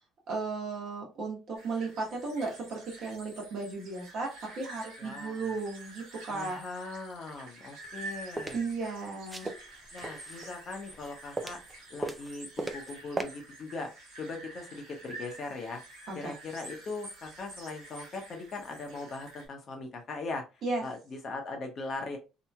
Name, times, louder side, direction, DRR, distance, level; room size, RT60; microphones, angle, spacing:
voice 1, 0.3-6.6 8.5-9.5 16.1-16.3 20.6-20.8, right 3 dB, 50° right, 0 dB, 1.1 m, -35 dB
sound 1, 1.5-19.5, right 2 dB, 80° right, 1.2 m, -48 dB
voice 2, 5.0-5.4 6.3-8.6 9.9-11.6 11.9-13.9 14.2-15.8 16.1-20.4 20.8-22.2, left 3 dB, 40° left, 3 dB, 0.8 m, -40 dB
sound 2, 7.8-8.6 9.2-10.5 10.9-11.7 12.0-12.9 13.2-13.3, right 2 dB, 15° right, 0.3 m, -36 dB
2.8 x 2.7 x 2.2 m, 0.28 s
cardioid pair, 125°, 0 cm